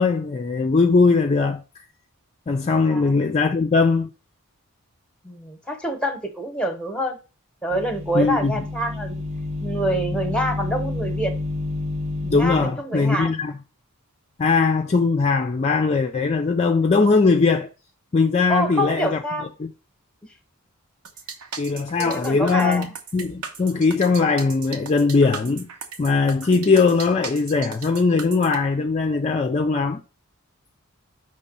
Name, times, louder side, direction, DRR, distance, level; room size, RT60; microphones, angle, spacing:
voice 1, 0.0-1.6 2.5-4.1 8.1-8.5 12.3-13.5 14.4-17.7 18.1-19.2 19.6-19.7 21.6-25.7 26.0-30.0, left 4 dB, 30° left, 0.3 m, -20 dB
voice 2, 5.2-7.2 7.6-9.2 9.6-11.3 12.2-13.3 18.5-19.5 22.0-22.9, equal, 5° left, 0.9 m, -26 dB
sound 1, 7.7-12.7, left 2 dB, 30° right, 0.9 m, -29 dB
sound 2, 21.0-28.6, right 6 dB, 80° right, 1.0 m, -37 dB
5.4 x 3.3 x 5.3 m
head